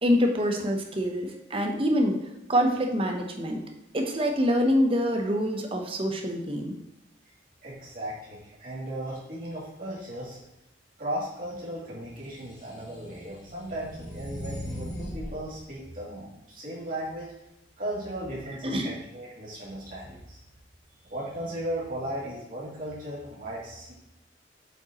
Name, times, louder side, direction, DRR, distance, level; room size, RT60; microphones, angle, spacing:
voice 1, 0.0-2.2 2.5-3.6 3.9-6.7 18.6-18.9, equal, 30° right, 3 dB, 0.8 m, -25 dB
voice 2, 7.6-10.4 11.0-17.4 17.8-20.4 21.0-23.9, right 1 dB, 50° right, -7 dB, 2.6 m, -36 dB
sound 1, 12.4-15.4, left 1 dB, 65° left, 2.2 m, -38 dB
7.9 x 5.2 x 3.0 m, 0.90 s
head